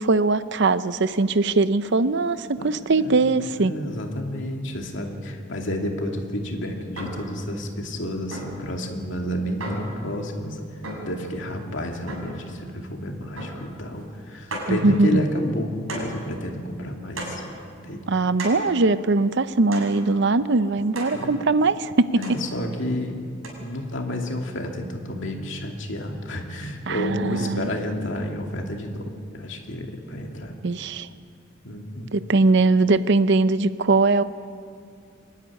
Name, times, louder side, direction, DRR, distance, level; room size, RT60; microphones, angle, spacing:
voice 1, 0.0-3.7 14.7-15.2 18.1-22.2 26.9-27.7 30.6-31.1 32.1-34.2, right 3 dB, 60° right, 14 dB, 0.7 m, -21 dB
voice 2, 3.0-10.6 11.0-17.4 17.8-18.0 21.1-21.4 22.1-23.2 23.6-30.5 31.6-32.1, left 1 dB, 65° left, 2 dB, 2.6 m, -30 dB
sound 1, 7.0-7.3 8.3-8.7 9.6-10.0 10.8-11.2 12.1-12.4 13.4-13.7 14.0-14.1 14.5-14.8 15.9-16.2 17.2-17.5 18.4-18.7 19.7-20.0 20.9-21.2 22.2-22.5 23.4-23.5, right 1 dB, 90° right, 6.3 m, -34 dB
23.5 x 12.5 x 10.0 m, 2.3 s
head